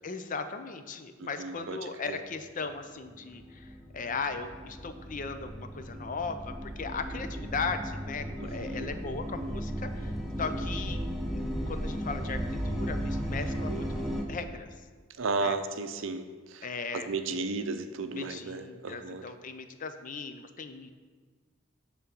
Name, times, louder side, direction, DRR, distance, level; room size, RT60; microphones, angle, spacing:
voice 1, 0.0-14.7 15.4-15.6 16.6-17.1 18.1-20.9, left 4 dB, 45° left, 9 dB, 0.6 m, -38 dB
voice 2, 1.2-1.8 2.1-2.2 8.4-8.9 13.7-13.8 15.2-16.7 16.9-19.3, right 3 dB, 80° right, 9 dB, 0.6 m, -34 dB
sound 1, 2.7-14.2, equal, ahead, 0.9 m, -35 dB
8.4 x 3.8 x 6.9 m, 1.5 s
head